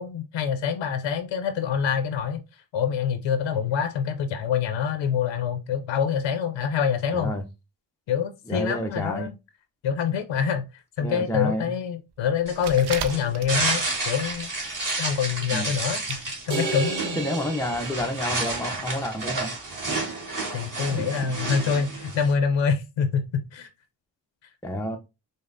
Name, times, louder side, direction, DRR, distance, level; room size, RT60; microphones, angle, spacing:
voice 1, 0.0-2.4 2.7-7.3 8.1-9.3 9.8-14.5 15.0-17.2 20.5-23.2 23.5-23.7, left 7 dB, 80° left, 0.6 m, -26 dB
voice 2, 7.1-7.4 8.5-9.3 11.0-11.7 15.5-15.8 17.2-19.5 21.2-21.4 24.6-25.0, left 1 dB, 5° left, 0.3 m, -29 dB
sound 1, 12.4-13.9 14.2-14.7 15.0-15.1 15.8-15.9 16.1-16.3 16.6-16.7 17.1-17.2, right 7 dB, 60° right, 0.6 m, -35 dB
sound 2, 12.5-22.3, right 3 dB, 45° right, 1.6 m, -31 dB
sound 3, 16.5-18.8, right 4 dB, 85° right, 1.1 m, -32 dB
5.2 x 2.0 x 2.5 m
cardioid pair, 70°, 45 cm